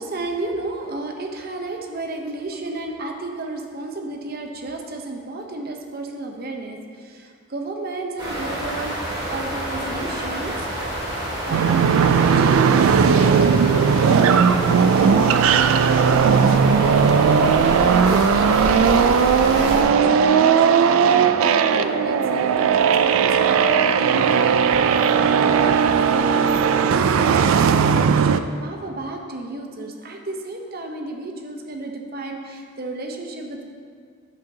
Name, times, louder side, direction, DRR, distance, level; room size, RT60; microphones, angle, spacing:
voice 1, 0.0-10.6 11.4-11.9 12.1-15.2 16.0-33.6, right 2 dB, 45° right, 3 dB, 0.8 m, -33 dB
sound 1, 8.2-19.8, right 1 dB, 20° right, 2.1 m, -28 dB
sound 2, 11.5-28.4, right 6 dB, 75° right, 0.3 m, -17 dB
sound 3, 14.0-27.7, left 1 dB, 65° left, 0.6 m, -36 dB
10.5 x 7.7 x 2.8 m, 2.1 s
head